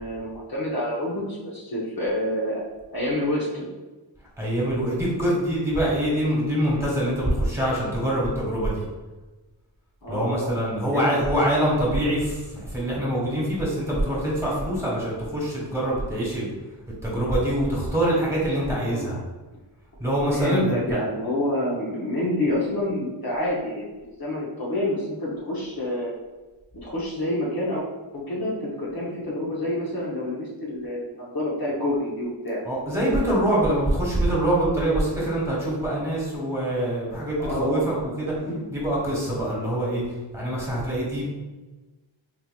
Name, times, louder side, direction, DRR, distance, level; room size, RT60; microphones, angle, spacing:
voice 1, 0.0-2.6 2.9-3.7 10.0-11.2 18.7-19.1 20.3-23.9 24.2-26.1 26.8-27.8 28.1-32.6 37.4-37.8 38.4-38.6, left 1 dB, 50° left, -6 dB, 0.9 m, -28 dB
voice 2, 4.4-8.9 10.1-16.5 17.0-19.2 20.0-21.0 32.6-38.4 38.7-41.2, right 1 dB, 5° right, -6 dB, 1.5 m, -24 dB
4.1 x 2.8 x 2.3 m, 1.2 s
wide cardioid pair, 65°, 46 cm